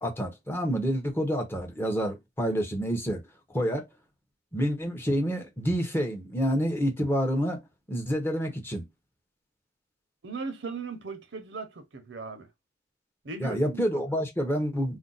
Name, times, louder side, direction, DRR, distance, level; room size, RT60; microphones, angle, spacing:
voice 1, 0.0-3.2 3.5-3.9 4.5-7.6 7.9-8.8 13.4-15.0, equal, 10° left, 0.7 m, -28 dB
voice 2, 10.2-12.5 13.2-14.1, right 4 dB, 70° right, 0.7 m, -38 dB
2.5 x 2.2 x 3.9 m
head